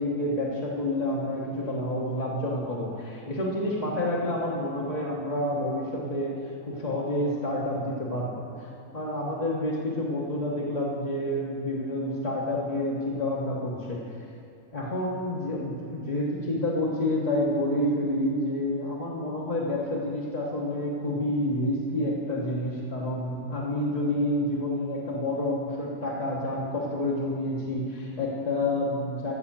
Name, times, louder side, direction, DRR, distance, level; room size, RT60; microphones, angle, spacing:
voice 1, 0.0-6.3 6.6-8.3 8.6-14.0 14.7-29.3, left 1 dB, 30° left, -5 dB, 1.2 m, -29 dB
14.0 x 5.9 x 7.4 m, 2.6 s
omnidirectional pair, 1.6 m